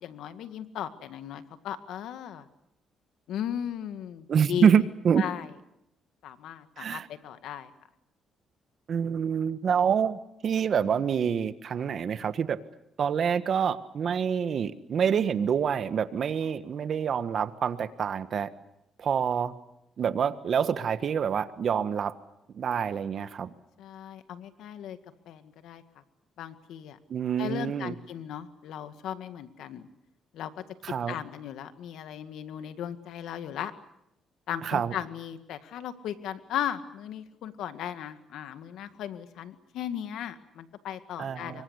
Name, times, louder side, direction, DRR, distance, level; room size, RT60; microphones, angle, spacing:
voice 1, 0.0-2.5 3.3-4.7 5.2-5.5 6.2-7.7 23.8-25.0 25.3-25.8 26.4-27.0 27.4-29.9 30.3-30.6 31.1-33.7 34.5-41.6, left 10 dB, 80° left, 10 dB, 1.9 m, -37 dB
voice 2, 4.3-5.2 6.8-7.1 8.9-12.6 13.0-18.5 19.0-19.5 20.0-22.1 22.5-23.5 27.1-27.9 30.8-31.2 34.6-34.9 41.2-41.6, right 7 dB, 55° right, 12 dB, 1.5 m, -27 dB
25.5 x 23.0 x 8.2 m, 0.86 s
cardioid pair, 90°, 0 cm